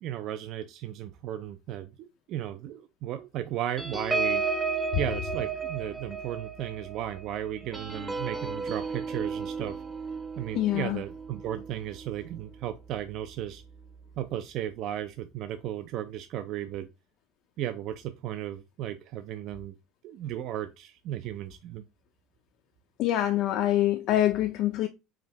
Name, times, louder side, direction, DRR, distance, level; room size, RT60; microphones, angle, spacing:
voice 1, 0.0-4.4 5.0-9.8 10.4-13.6 14.2-16.9 17.6-19.7 20.0-21.8, right 11 dB, 50° right, 0.4 m, -35 dB
sound 1, 3.8-12.7 13.1-13.3 13.6-13.9, right 4 dB, 10° right, 0.6 m, -34 dB
voice 2, 10.5-11.0 23.0-24.9, left 13 dB, 50° left, 0.4 m, -25 dB
4.9 x 2.6 x 3.0 m
cardioid pair, 155°, 0 cm